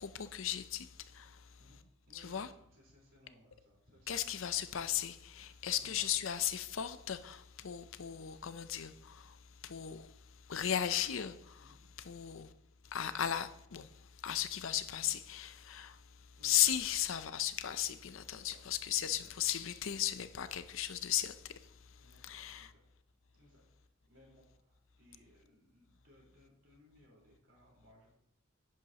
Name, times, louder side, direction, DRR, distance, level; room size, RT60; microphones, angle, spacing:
voice 1, 0.0-1.4 2.1-2.5 4.1-9.4 9.6-10.1 10.5-12.5 12.9-13.9 14.2-16.0 16.4-21.5 22.2-22.7, left 11 dB, 70° left, 0.6 m, -36 dB
voice 2, 1.6-4.5 5.6-6.3 11.6-11.8 16.4-16.6 18.3-18.8 19.1-19.4 22.0-22.9 23.3-28.2, equal, 65° right, 4.1 m, -64 dB
10.5 x 9.3 x 2.9 m
head